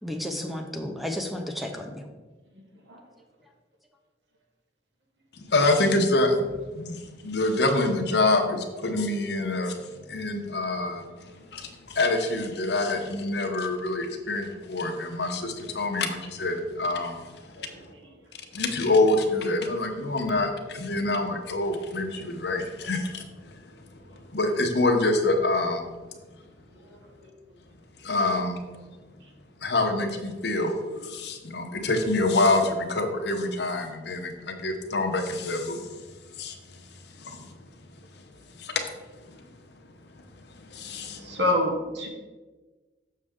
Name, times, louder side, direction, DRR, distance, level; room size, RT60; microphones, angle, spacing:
voice 1, 0.0-2.1, left 1 dB, ahead, 4 dB, 0.6 m, -33 dB
voice 2, 5.3-9.8 10.1-17.9 18.5-23.2 23.5-23.6 24.1-25.9 28.0-28.8 29.6-35.9 36.4-36.6 37.2-37.5 38.5-38.8 39.2-39.5 40.5-41.4, left 2 dB, 65° left, 4 dB, 0.9 m, -26 dB
voice 3, 41.3-42.1, left 1 dB, 70° right, 1 dB, 1.4 m, -25 dB
6.6 x 6.4 x 3.6 m, 1.3 s
head